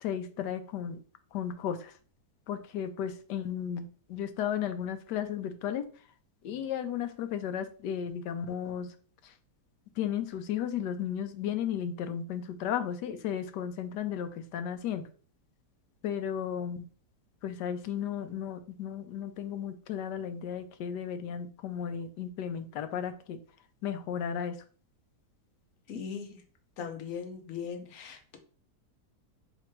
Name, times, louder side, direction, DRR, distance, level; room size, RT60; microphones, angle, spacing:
voice 1, 0.0-1.0 1.3-1.9 2.5-3.8 4.1-5.8 6.4-8.9 10.0-15.0 16.0-16.8 17.4-23.4 23.8-24.5, left 9 dB, 85° left, 9 dB, 1.2 m, -34 dB
voice 2, 25.9-26.4 26.8-28.4, left 7 dB, 60° left, 4 dB, 1.1 m, -39 dB
3.3 x 3.0 x 4.5 m, 0.41 s
omnidirectional pair, 1.8 m